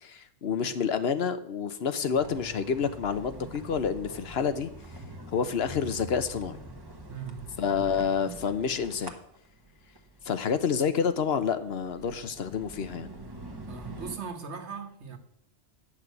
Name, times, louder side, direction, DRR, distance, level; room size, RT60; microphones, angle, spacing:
voice 1, 0.0-4.7 5.3-6.6 7.6-9.1 10.2-13.1, left 6 dB, 65° left, 1.0 m, -28 dB
sound 1, 2.1-14.2, right 2 dB, 20° right, 1.0 m, -45 dB
voice 2, 7.1-8.1 13.7-15.2, right 5 dB, 80° right, 1.6 m, -40 dB
9.3 x 6.0 x 8.1 m
omnidirectional pair, 1.1 m